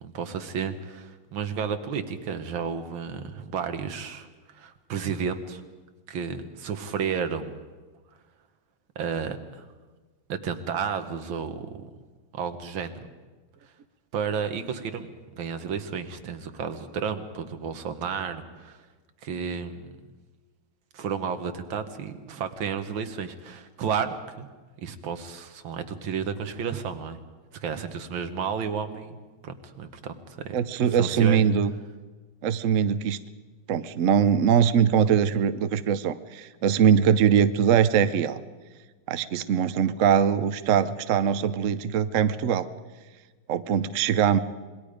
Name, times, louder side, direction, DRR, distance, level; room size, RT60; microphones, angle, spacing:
voice 1, 0.0-4.3 4.5-5.6 6.1-7.6 9.0-9.6 10.3-11.9 12.3-13.0 14.1-18.8 19.2-19.9 20.9-24.5 24.8-27.2 27.6-30.6 30.9-31.5, right 6 dB, 80° right, 8 dB, 2.0 m, -32 dB
voice 2, 30.5-31.7 32.4-33.2 33.7-38.4 39.1-42.7 43.5-44.4, right 8 dB, 60° right, 13 dB, 0.8 m, -22 dB
27.0 x 21.5 x 5.1 m, 1.3 s
omnidirectional pair, 2.2 m